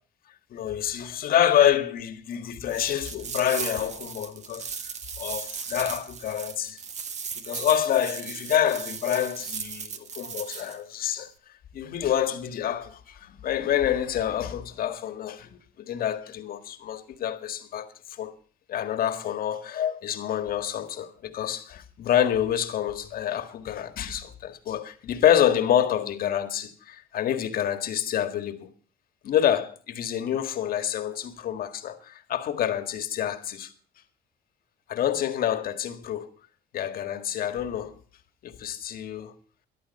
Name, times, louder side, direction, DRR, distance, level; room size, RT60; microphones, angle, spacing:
voice 1, 0.5-6.8 7.3-11.3 11.7-18.3 18.7-28.7 29.2-33.7 34.9-36.3 36.7-38.0 38.4-39.3, left 10 dB, 60° left, 1.7 m, -27 dB
sound 1, 2.7-10.8, right 6 dB, 45° right, 1.3 m, -37 dB
14.0 x 11.0 x 5.4 m
cardioid pair, 110°, 17 cm